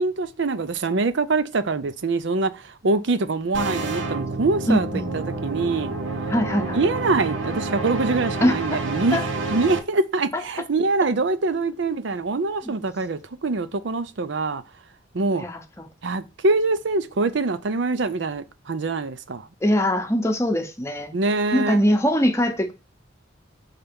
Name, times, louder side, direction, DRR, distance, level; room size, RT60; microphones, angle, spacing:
voice 1, 0.0-6.0 6.6-9.2 9.5-14.6 15.1-15.4 16.0-19.5 21.1-21.8, right 3 dB, 65° right, 0.6 m, -24 dB
sound 1, 3.5-9.8, right 3 dB, 90° right, 1.0 m, -29 dB
voice 2, 4.7-5.1 6.3-6.8 8.4-8.8 9.1-9.2 10.3-10.4 15.4-15.9 19.6-21.1 21.5-22.7, equal, 15° left, 0.8 m, -22 dB
5.7 x 3.4 x 5.2 m
head